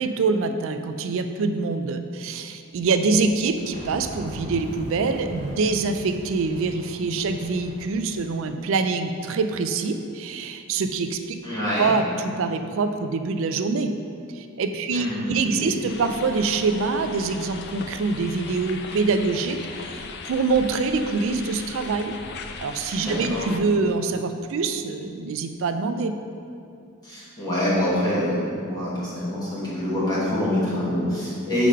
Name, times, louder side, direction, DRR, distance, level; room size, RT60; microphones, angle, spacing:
voice 1, 0.0-11.4 11.8-13.9 14.3-22.2 22.6-26.1, right 4 dB, 60° right, 8 dB, 0.4 m, -25 dB
sound 1, 3.6-8.6, equal, 30° right, 0.7 m, -39 dB
voice 2, 11.4-12.0 14.9-15.7 23.0-23.4 27.0-31.7, left 1 dB, 20° left, -9 dB, 1.2 m, -25 dB
sound 2, 15.9-23.6, left 4 dB, 50° left, 0.4 m, -38 dB
4.8 x 3.7 x 5.5 m, 2.6 s
head